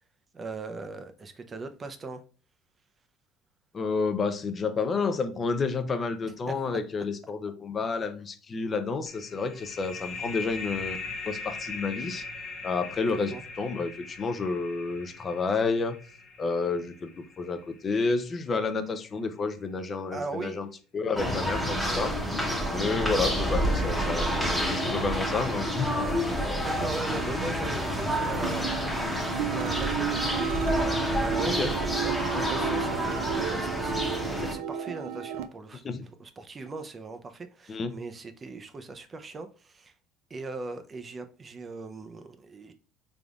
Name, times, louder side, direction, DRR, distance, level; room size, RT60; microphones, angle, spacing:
voice 1, 0.3-2.2 6.5-6.6 13.1-13.4 20.1-20.6 23.1-23.4 26.6-30.4 30.7-35.8 36.2-39.9 40.3-42.7, right 3 dB, 25° right, 0.5 m, -39 dB
voice 2, 3.7-11.0 11.2-12.2 12.6-16.0 16.4-20.7 20.9-22.1 22.7-26.1 31.5-31.7 35.8-36.0 37.7-37.9, left 4 dB, 30° left, 0.5 m, -30 dB
sound 1, 9.1-18.4, left 4 dB, 45° left, 1.0 m, -40 dB
sound 2, 21.2-34.5, equal, ahead, 0.9 m, -29 dB
sound 3, 28.4-35.5, right 9 dB, 85° right, 0.4 m, -33 dB
3.8 x 3.4 x 2.3 m
cardioid pair, 120°, 0 cm